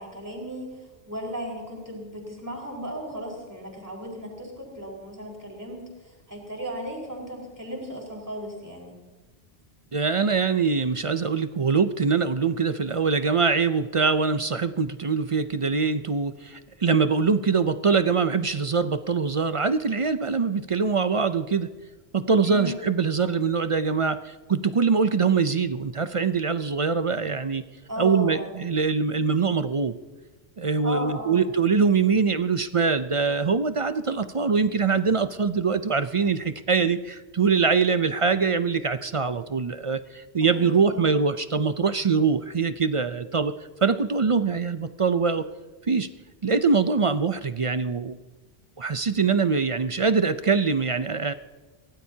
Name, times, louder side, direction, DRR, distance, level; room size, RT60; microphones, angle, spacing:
voice 1, 0.0-8.9 22.4-22.8 27.9-28.5 30.8-31.4 40.4-41.1, right 1 dB, 15° right, -2 dB, 4.6 m, -35 dB
voice 2, 9.9-21.7 22.1-27.6 28.0-30.0 30.6-43.5 43.8-45.5 45.9-46.1 46.4-48.2 48.8-51.3, right 5 dB, 40° right, 11 dB, 0.5 m, -23 dB
23.5 x 17.5 x 2.8 m, 1.2 s
omnidirectional pair, 1.1 m